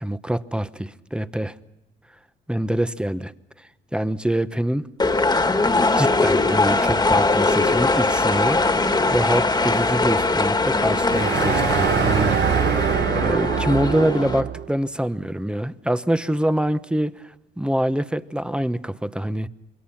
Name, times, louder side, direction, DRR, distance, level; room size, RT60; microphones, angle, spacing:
voice 1, 0.0-1.5 2.5-3.3 3.6-4.9 6.0-12.6 13.0-17.1 17.6-19.5, right 1 dB, 5° right, 1.0 m, -25 dB
sound 1, 5.0-14.4, left 3 dB, 20° left, 1.9 m, -21 dB
sound 2, 11.0-14.7, right 8 dB, 60° right, 1.2 m, -23 dB
27.0 x 23.0 x 5.9 m
cardioid pair, 90°, 20 cm